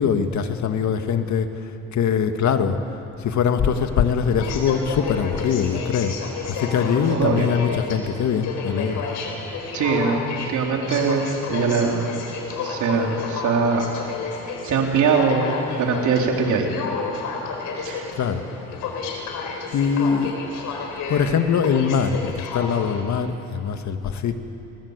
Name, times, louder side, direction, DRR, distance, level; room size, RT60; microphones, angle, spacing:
voice 1, 0.0-1.5 1.9-2.8 3.2-6.1 6.5-9.0 18.2-18.4 19.7-20.3 21.1-24.3, left 7 dB, 70° left, 7 dB, 1.9 m, -22 dB
Aircraft, 3.6-23.0, left 4 dB, 85° left, 4.5 m, -31 dB
voice 2, 7.1-7.5 9.7-12.1 12.6-13.9 14.6-15.5 15.8-16.7 17.8-18.1, right 5 dB, 75° right, 1 dB, 3.7 m, -22 dB
28.5 x 20.5 x 8.2 m, 2.9 s
cardioid pair, 90°, 30 cm